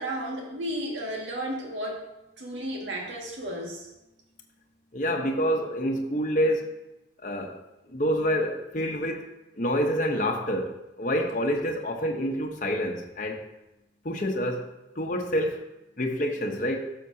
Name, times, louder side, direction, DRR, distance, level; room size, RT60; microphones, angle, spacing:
voice 1, 0.0-2.1 2.4-3.9, right 1 dB, 85° right, 0 dB, 1.9 m, -33 dB
voice 2, 4.9-6.7 7.2-7.6 7.9-9.2 9.6-13.4 14.0-14.7 15.0-15.6 16.0-16.8, equal, 45° left, 2 dB, 0.9 m, -27 dB
12.5 x 6.8 x 2.8 m, 0.93 s
head